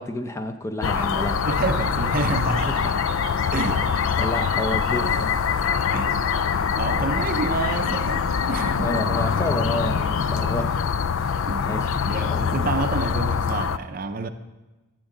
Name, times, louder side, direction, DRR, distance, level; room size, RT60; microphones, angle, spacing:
voice 1, 0.0-1.4 3.6-3.7 4.2-5.4 8.8-10.7 11.6-11.9 12.3-12.4, left 1 dB, 15° left, 0.5 m, -29 dB
sound 1, 0.8-13.8, left 6 dB, 85° left, 0.4 m, -24 dB
sound 2, 1.2-10.6, right 3 dB, 85° right, 0.8 m, -40 dB
voice 2, 1.4-3.0 3.5-3.9 5.9-6.2 6.8-9.0 11.5-11.7 12.0-14.3, right 3 dB, 45° right, 0.5 m, -29 dB
15.5 x 7.3 x 3.8 m
head